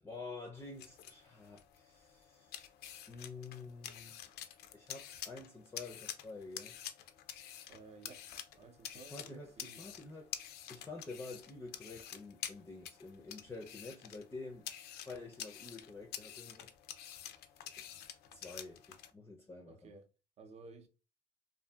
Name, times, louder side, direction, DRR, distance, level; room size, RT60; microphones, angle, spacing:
voice 1, 0.0-2.7 3.1-4.2 4.7-6.7 8.9-10.3 10.7-14.7 15.0-16.7 18.3-19.9, left 3 dB, 15° left, 0.5 m, -49 dB
Peeling a cucumber, 0.5-19.1, left 10 dB, 70° left, 0.4 m, -49 dB
voice 2, 7.7-8.3 8.5-10.0 19.7-20.1 20.4-20.9, right 4 dB, 40° right, 0.6 m, -55 dB
2.6 x 2.5 x 2.2 m
cardioid pair, 110°, 17 cm